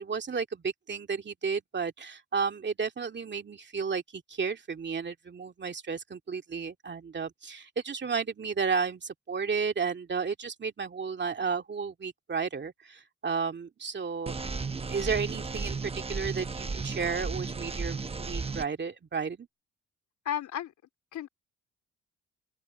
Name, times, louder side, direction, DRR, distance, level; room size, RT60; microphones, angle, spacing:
voice 1, 0.0-14.4 14.9-19.5, right 5 dB, 35° right, 2.4 m, -33 dB
sound 1, 14.3-18.6, right 4 dB, 20° right, 1.0 m, -34 dB
voice 2, 20.3-20.7 21.1-21.3, left 10 dB, 75° left, 3.7 m, -33 dB
open air
cardioid pair, 90°, 30 cm